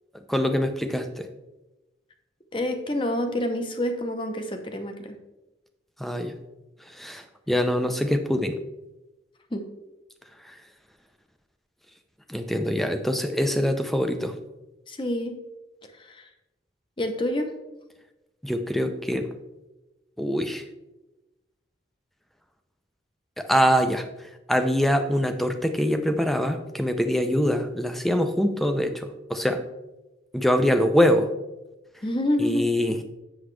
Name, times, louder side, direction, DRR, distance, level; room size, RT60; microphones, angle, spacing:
voice 1, 0.3-1.3 6.0-6.3 6.9-8.6 10.4-10.6 12.3-14.3 18.4-19.3 20.2-20.6 23.4-29.6 30.3-31.3 32.4-33.1, equal, ahead, 7 dB, 0.5 m, -24 dB
voice 2, 2.5-5.2 9.5-9.7 14.9-15.4 15.9-16.3 17.0-17.5 32.0-32.7, left 1 dB, 25° left, 6 dB, 0.8 m, -28 dB
8.0 x 7.1 x 3.3 m, 1.0 s
head